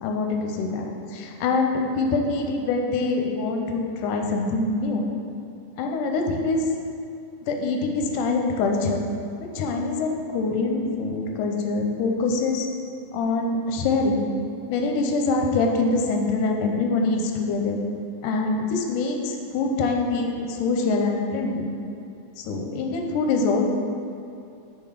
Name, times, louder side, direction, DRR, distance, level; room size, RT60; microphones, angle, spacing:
voice 1, 0.0-5.0 5.8-6.7 7.4-9.0 9.4-12.7 13.1-14.3 14.7-17.8 18.2-21.7 22.4-23.7, left 3 dB, 90° left, 2 dB, 2.1 m, -24 dB
5.5 x 4.5 x 4.9 m, 2.6 s
omnidirectional pair, 3.5 m